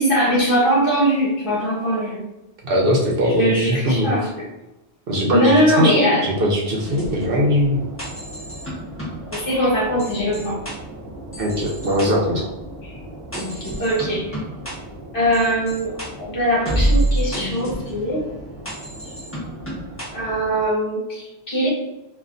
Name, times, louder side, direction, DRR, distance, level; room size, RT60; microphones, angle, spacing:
voice 1, 0.0-2.3 3.2-4.4 5.3-6.2 9.3-10.6 12.8-13.0 13.8-14.3 15.1-18.2 19.0-19.1 20.1-21.7, equal, 55° left, -5 dB, 1.4 m, -21 dB
voice 2, 2.6-4.1 5.1-7.8 11.4-12.4, equal, 60° right, -1 dB, 0.9 m, -20 dB
sound 1, 6.8-20.6, right 1 dB, 10° left, 1.1 m, -29 dB
5.2 x 2.5 x 2.5 m, 0.99 s
omnidirectional pair, 1.1 m